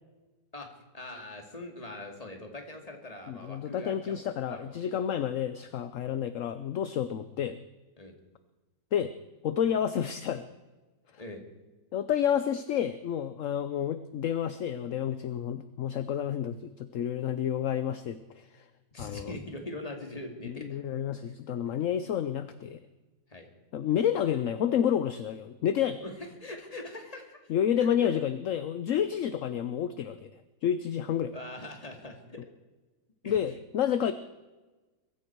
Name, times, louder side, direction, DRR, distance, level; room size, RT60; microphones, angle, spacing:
voice 1, 0.9-4.8 8.0-8.1 11.2-11.4 18.9-20.8 23.3-23.5 26.0-26.1 26.4-27.4 28.0-28.1 31.3-32.4 33.2-33.4, left 1 dB, 20° left, 3 dB, 2.4 m, -42 dB
voice 2, 3.3-7.6 8.9-9.1 9.4-10.5 11.9-18.7 19.0-19.4 20.4-22.8 23.7-26.0 27.5-30.2 30.6-31.3 33.3-34.1, left 9 dB, 60° left, 12 dB, 0.9 m, -30 dB
22.5 x 14.0 x 4.6 m, 1.2 s
omnidirectional pair, 1.8 m